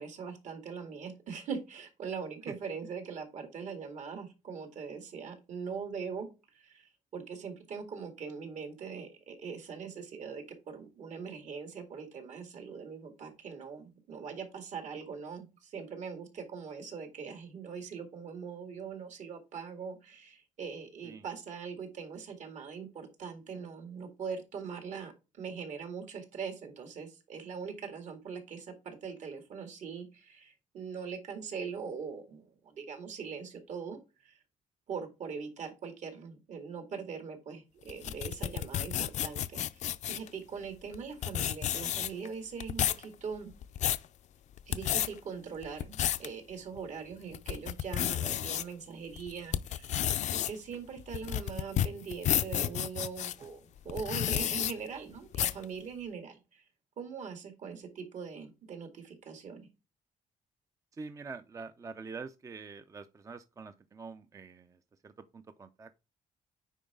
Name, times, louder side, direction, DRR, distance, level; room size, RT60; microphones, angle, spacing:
voice 1, 0.0-25.1 25.4-34.4 34.9-43.5 44.7-50.0 50.3-56.6 57.0-59.7, right 6 dB, 60° right, 2.1 m, -42 dB
sound 1, 37.9-40.3 40.9-41.0 41.2-42.3 42.6-43.0 43.5-44.1 44.6-45.1 45.6-46.3 46.8-46.9 47.3-48.6 49.2-53.3 53.9-54.7 55.3-55.6, left 11 dB, 60° left, 0.5 m, -31 dB
voice 2, 60.9-64.8 65.0-66.0, right 4 dB, 25° right, 0.5 m, -45 dB
9.1 x 4.8 x 3.6 m
cardioid pair, 135°, 14 cm